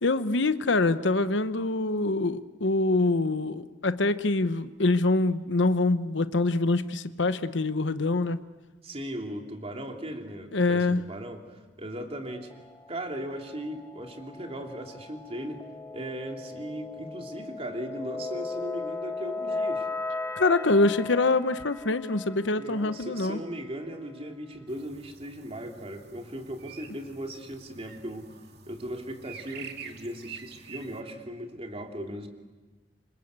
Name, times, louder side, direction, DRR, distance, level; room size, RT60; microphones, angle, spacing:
voice 1, 0.0-8.4 10.5-11.0 20.4-23.4, left 2 dB, 75° left, 1.0 m, -25 dB
voice 2, 8.8-12.5 12.9-15.6 15.9-19.9 22.5-28.3 28.7-32.3, equal, 35° right, 3.1 m, -38 dB
sound 1, 12.3-23.6, left 3 dB, 15° left, 0.9 m, -37 dB
sound 2, 24.7-31.0, right 6 dB, 60° right, 2.5 m, -47 dB
27.5 x 26.0 x 8.2 m
head